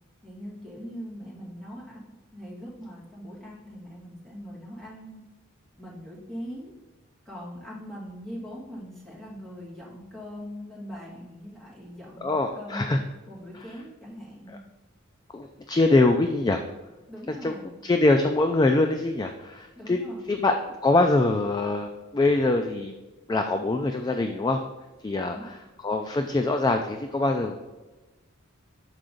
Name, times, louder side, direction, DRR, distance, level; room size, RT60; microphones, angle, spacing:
voice 1, 0.2-5.2 5.8-6.7 7.3-13.0 13.3-14.6 17.1-17.8 19.8-20.4 25.3-25.5, equal, ahead, -7 dB, 2.0 m, -41 dB
voice 2, 12.2-13.0 13.5-13.6 14.5-14.6 15.3-16.6 17.3-17.5 17.8-20.0 20.3-22.9 23.3-24.6 25.0-27.6, left 2 dB, 20° left, 5 dB, 0.3 m, -24 dB
6.5 x 4.7 x 3.8 m, 1.1 s
head